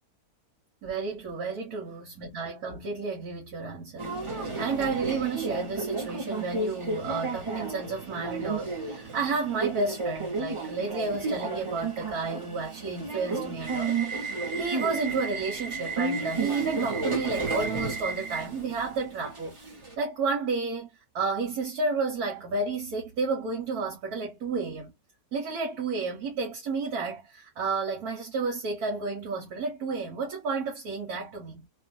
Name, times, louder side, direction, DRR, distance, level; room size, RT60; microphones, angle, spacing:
voice 1, 0.8-20.9 21.1-24.9 25.3-31.7, right 4 dB, 80° right, 1.6 m, -31 dB
Subway metro underground, 4.0-19.9, right 3 dB, 30° right, 0.7 m, -32 dB
3.1 x 2.3 x 2.5 m
omnidirectional pair, 1.6 m